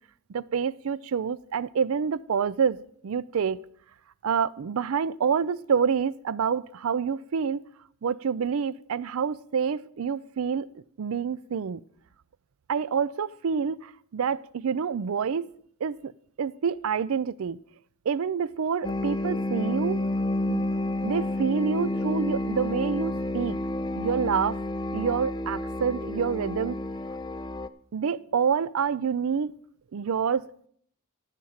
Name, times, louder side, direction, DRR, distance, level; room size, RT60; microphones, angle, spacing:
voice 1, 0.3-3.6 4.2-7.6 8.0-10.7 11.0-11.8 12.7-15.5 15.8-16.1 16.4-17.6 18.1-20.0 20.5-20.6 21.0-23.6 23.9-24.6 24.9-26.8 27.9-29.5 29.9-30.4, right 6 dB, 75° right, 0.4 m, -27 dB
sound 1, 18.8-27.7, left 1 dB, 20° left, 0.4 m, -30 dB
13.0 x 5.1 x 7.2 m
head